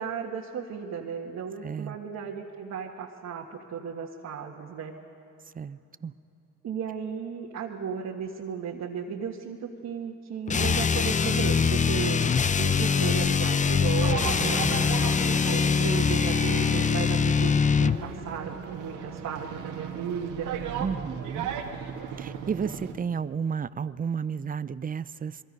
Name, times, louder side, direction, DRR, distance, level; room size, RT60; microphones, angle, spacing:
voice 1, 0.0-4.9 6.6-12.3 12.6-20.6, right 6 dB, 65° right, -2 dB, 1.6 m, -35 dB
voice 2, 1.6-2.0 5.5-6.1 14.4-14.7 20.8-21.5 22.2-25.4, right 6 dB, 30° right, 16 dB, 0.6 m, -32 dB
sound 1, 10.5-18.0, left 6 dB, 25° left, 0.5 m, -23 dB
sound 2, 14.0-22.9, right 7 dB, 90° right, 1.7 m, -36 dB
27.5 x 22.5 x 5.4 m, 3.0 s
cardioid pair, 90°, 30 cm